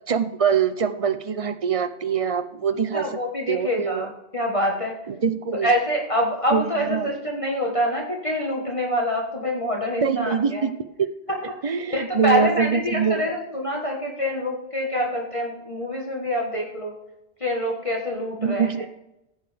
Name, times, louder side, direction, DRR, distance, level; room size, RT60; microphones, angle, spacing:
voice 1, 0.1-3.1 3.5-4.1 5.1-5.7 6.5-7.1 10.0-10.7 11.0-11.1 11.6-13.2 18.4-18.9, right 6 dB, 40° right, 12 dB, 0.5 m, -24 dB
voice 2, 2.9-5.0 5.6-10.7 11.4-11.5 11.9-16.9 17.4-18.9, equal, 30° left, -1 dB, 1.4 m, -26 dB
15.5 x 8.0 x 3.4 m, 0.88 s
omnidirectional pair, 1.1 m